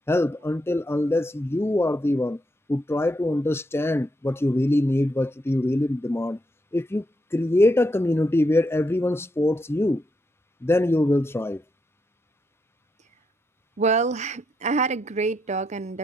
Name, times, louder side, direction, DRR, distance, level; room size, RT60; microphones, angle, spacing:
voice 1, 0.1-2.4 2.7-6.4 6.7-7.0 7.3-10.0 10.6-11.6, left 1 dB, 15° left, 0.4 m, -23 dB
voice 2, 13.8-16.0, right 4 dB, 35° right, 0.7 m, -25 dB
head